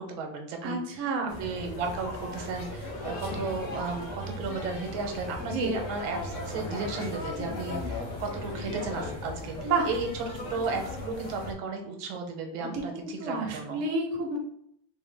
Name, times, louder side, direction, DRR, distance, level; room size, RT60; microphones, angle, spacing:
voice 1, 0.0-1.1 1.4-13.8, right 4 dB, 80° right, 4 dB, 1.4 m, -34 dB
voice 2, 0.6-1.3 5.4-5.7 9.6-9.9 12.7-14.4, right 3 dB, 60° right, 0 dB, 0.8 m, -30 dB
sound 1, 1.3-11.5, left 2 dB, 60° left, 0.8 m, -37 dB
3.7 x 2.1 x 3.3 m, 0.69 s
omnidirectional pair, 2.2 m